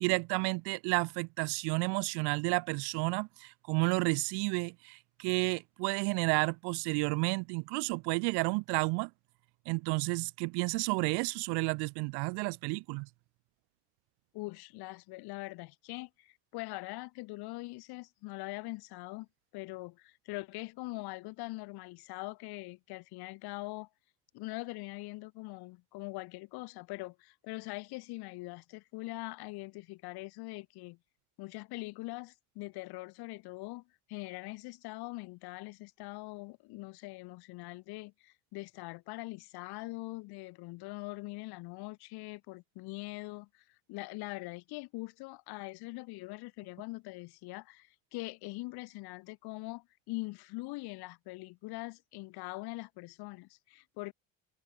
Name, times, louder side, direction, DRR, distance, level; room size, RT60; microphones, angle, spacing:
voice 1, 0.0-9.1 9.7-13.1, right 29 dB, 80° right, 3.5 m, -31 dB
voice 2, 14.3-19.3 19.5-23.9 24.3-31.0 31.4-54.1, left 22 dB, 75° left, 2.6 m, -43 dB
supercardioid pair, 105°, 39 cm